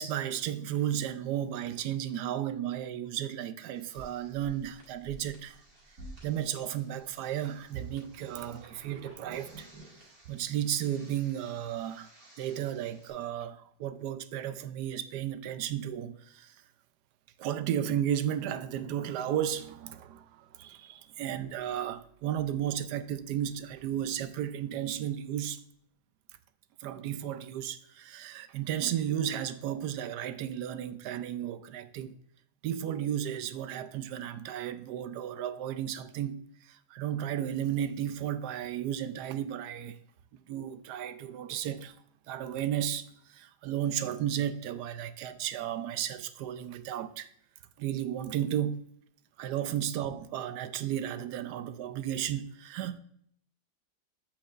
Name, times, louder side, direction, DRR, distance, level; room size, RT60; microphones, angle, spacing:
voice 1, 0.0-5.6 6.2-9.7 10.3-12.1 12.4-16.5 17.4-25.6 26.8-32.1 32.6-40.0 40.5-41.9 42.3-47.3 47.8-48.8 49.4-53.0, right 10 dB, 85° right, 1.2 m, -34 dB
sound 1, 3.7-13.1, right 1 dB, 50° right, 2.5 m, -53 dB
8.0 x 6.9 x 2.5 m
omnidirectional pair, 1.7 m